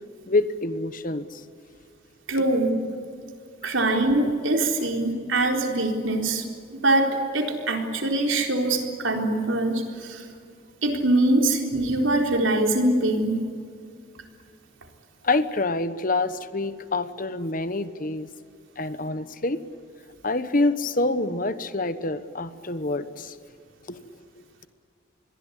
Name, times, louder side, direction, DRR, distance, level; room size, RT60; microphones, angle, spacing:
voice 1, 0.3-1.4 4.8-4.9 15.2-18.3 18.8-19.6 20.2-23.4 23.9-24.4, left 2 dB, 45° left, 12 dB, 1.1 m, -27 dB
voice 2, 2.3-2.7 3.6-6.5 6.7-10.3 10.8-13.4, right 2 dB, 80° right, 3 dB, 4.1 m, -23 dB
27.5 x 22.0 x 8.4 m, 2.3 s
head